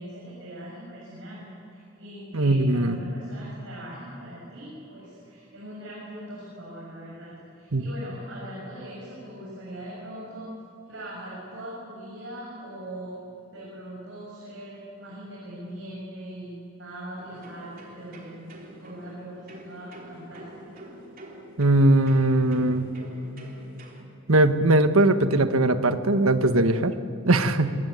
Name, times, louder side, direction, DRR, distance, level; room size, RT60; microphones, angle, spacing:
voice 1, 0.0-10.5 10.9-13.2 13.5-20.8, right 1 dB, 55° right, -5 dB, 7.2 m, -41 dB
voice 2, 2.3-3.0 7.7-7.8 21.6-22.9 24.3-26.9 27.3-27.7, right 2 dB, 85° right, 9 dB, 1.4 m, -20 dB
sound 1, 17.2-24.0, equal, 40° right, 3.6 m, -46 dB
24.5 x 22.5 x 9.4 m, 2.6 s
head